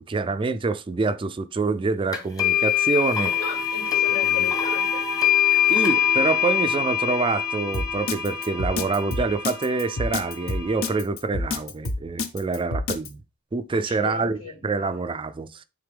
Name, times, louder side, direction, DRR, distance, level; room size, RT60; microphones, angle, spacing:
voice 1, 0.0-3.3 4.4-4.5 5.7-13.2 13.5-14.4 14.6-15.6, right 4 dB, 25° right, 0.3 m, -26 dB
sound 1, 2.1-11.0, left 9 dB, 20° left, 1.1 m, -24 dB
voice 2, 3.4-5.0 13.7-14.6, left 4 dB, 90° left, 4.0 m, -37 dB
Drum kit, 7.7-13.1, left 2 dB, 70° left, 0.9 m, -27 dB
9.2 x 4.0 x 3.3 m
head